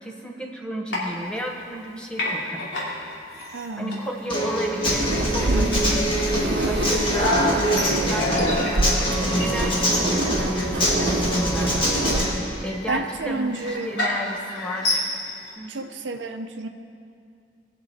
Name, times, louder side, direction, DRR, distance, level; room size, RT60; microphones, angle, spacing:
voice 1, 0.0-2.7 3.8-6.1 6.7-11.8 12.6-15.0 15.6-15.9, equal, 5° left, 1 dB, 0.9 m, -33 dB
sound 1, 0.9-1.9 2.1-15.5, left 2 dB, 85° left, 2.6 m, -32 dB
voice 2, 3.5-4.1 5.5-5.8 12.9-14.0 15.7-16.7, right 2 dB, 85° right, 6 dB, 0.7 m, -30 dB
Human voice / Acoustic guitar, 4.3-12.3, equal, 30° left, 2.1 m, -24 dB
sound 2, 4.8-12.2, right 1 dB, 60° right, 0.9 m, -26 dB
19.5 x 7.0 x 4.2 m, 2.4 s
head